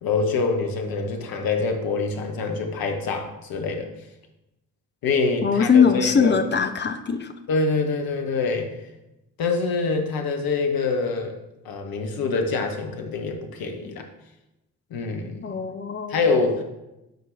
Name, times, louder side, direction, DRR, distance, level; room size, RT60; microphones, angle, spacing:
voice 1, 0.0-3.9 5.0-6.4 7.5-8.7 9.4-11.4 11.6-14.0 14.9-15.6 16.1-16.6, left 4 dB, 50° left, 4 dB, 1.1 m, -25 dB
voice 2, 5.4-7.3 15.4-16.2, left 6 dB, 25° left, 8 dB, 0.6 m, -21 dB
9.0 x 4.6 x 2.6 m, 0.94 s
figure-of-eight pair, 40°, 46 cm